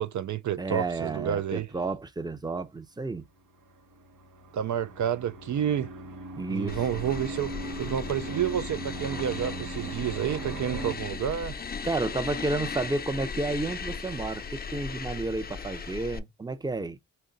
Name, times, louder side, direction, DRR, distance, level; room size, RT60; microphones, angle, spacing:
voice 1, 0.0-1.7 4.5-5.9 6.5-11.6, right 9 dB, 65° right, 0.4 m, -30 dB
voice 2, 0.6-3.2 6.4-6.8 11.8-17.0, right 3 dB, 15° right, 0.6 m, -31 dB
sound 1, 3.6-10.9, right 2 dB, 80° right, 1.0 m, -39 dB
Fregament loopcanto, 6.7-16.2, left 5 dB, 30° left, 0.5 m, -37 dB
3.7 x 2.2 x 3.8 m
cardioid pair, 60°, 32 cm